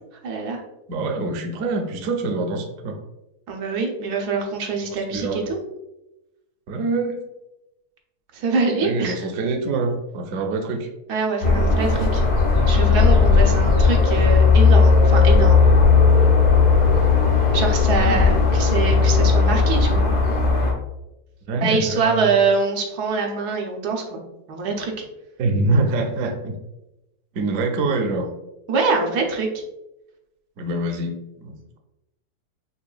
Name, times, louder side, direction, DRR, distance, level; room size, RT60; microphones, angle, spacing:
voice 1, 0.2-0.6 3.5-5.6 8.3-9.2 11.1-12.2 12.7-15.7 17.5-20.1 21.6-24.2 24.5-24.9 28.7-29.5, right 4 dB, 90° right, 1 dB, 1.2 m, -24 dB
voice 2, 0.9-3.0 4.9-5.5 6.7-7.2 8.8-10.9 17.9-18.3 21.5-22.3 25.4-26.5 27.3-28.3 30.6-31.5, right 2 dB, 70° right, 3 dB, 0.9 m, -25 dB
sound 1, 11.4-20.7, left 4 dB, 75° left, 1.4 m, -16 dB
5.5 x 2.2 x 2.3 m, 0.94 s
omnidirectional pair, 1.7 m